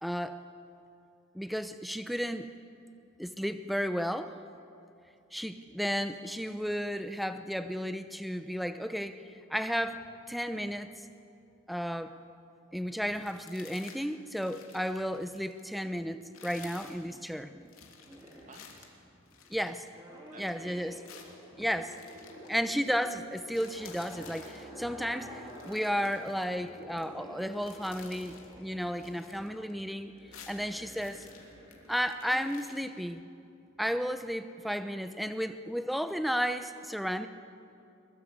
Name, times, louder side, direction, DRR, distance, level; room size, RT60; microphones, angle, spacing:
voice 1, 0.0-0.4 1.3-2.5 3.2-4.3 5.3-9.2 9.5-10.0 10.3-10.9 11.7-12.2 12.7-17.7 18.1-18.2 19.5-19.8 20.4-21.0 21.6-21.9 22.5-30.1 30.5-31.3 31.9-33.2 33.8-37.3, equal, ahead, 10 dB, 0.8 m, -33 dB
voice 2, 12.8-13.1 17.8-17.9 18.4-19.4 20.3-20.9 21.5-21.6, right 3 dB, 35° right, 4 dB, 2.3 m, -56 dB
sound 1, 13.1-14.0 14.3-15.7 16.2-17.0 17.7-20.3 21.0-22.5 22.9-23.1 23.3-24.6 25.4-27.0 27.4-28.5 28.9-29.9 30.2-32.8, left 7 dB, 85° left, 3.0 m, -53 dB
sound 2, 17.3-17.7 18.0-18.6 19.9-22.7 22.9-26.1 26.5-32.6 33.0-33.1, right 1 dB, 20° right, 3.7 m, -52 dB
Gurgling, 20.2-28.6, left 1 dB, 25° left, 4.4 m, -52 dB
22.0 x 22.0 x 8.1 m, 2.6 s
head